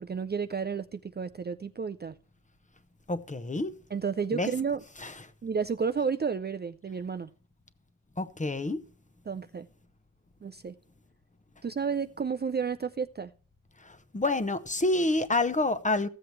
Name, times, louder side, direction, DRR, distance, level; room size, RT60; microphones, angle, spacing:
voice 1, 0.0-2.1 3.9-4.8 5.4-7.3 9.3-9.7 10.4-10.7 11.6-13.3, right 6 dB, 30° right, 0.4 m, -31 dB
voice 2, 3.1-3.7 4.3-4.5 5.0-5.1 8.2-8.8 13.8-16.1, left 2 dB, 25° left, 0.9 m, -28 dB
15.0 x 7.7 x 3.1 m
wide cardioid pair, 115°, 32 cm